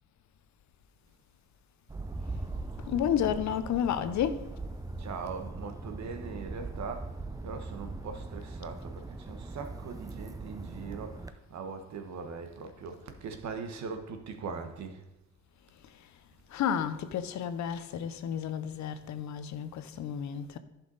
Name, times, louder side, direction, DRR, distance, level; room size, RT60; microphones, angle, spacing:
sound 1, 1.9-11.3, right 3 dB, 10° right, 0.5 m, -40 dB
voice 1, 2.8-4.5 16.5-20.6, left 9 dB, 70° left, 0.7 m, -31 dB
voice 2, 5.0-15.0, right 5 dB, 65° right, 1.3 m, -41 dB
11.0 x 5.8 x 4.0 m
cardioid pair, 90°, 30 cm